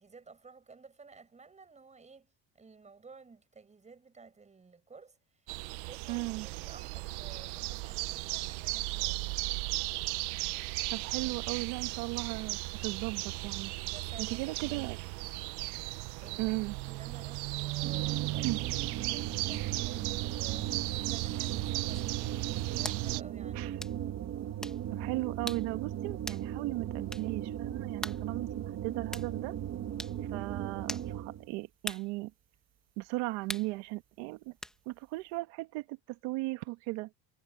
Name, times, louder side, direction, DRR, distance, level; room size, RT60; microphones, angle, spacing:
voice 1, 0.0-5.6 5.9-9.4 13.8-14.9 16.2-16.6 16.8-23.8, right 4 dB, 15° right, 7.5 m, -54 dB
sound 1, 5.5-23.2, right 23 dB, 55° right, 0.5 m, -36 dB
voice 2, 6.1-6.5 10.9-13.7 14.2-15.0 16.4-16.8 18.4-18.6 23.5-23.7 24.9-29.5 30.3-32.3 33.0-34.6 34.8-37.1, right 22 dB, 85° right, 1.6 m, -36 dB
sound 2, 17.8-31.5, right 10 dB, 35° right, 1.4 m, -38 dB
sound 3, 21.9-22.1 22.8-23.1 23.8-23.9 24.6-24.8 25.5-25.7 26.3-26.5 27.1-27.3 28.0-28.2 29.1-29.3 30.0-30.2 30.9-31.1 31.8-32.1 33.5-33.7 34.6-34.8, equal, ahead, 0.9 m, -40 dB
cardioid pair, 175°, 48 cm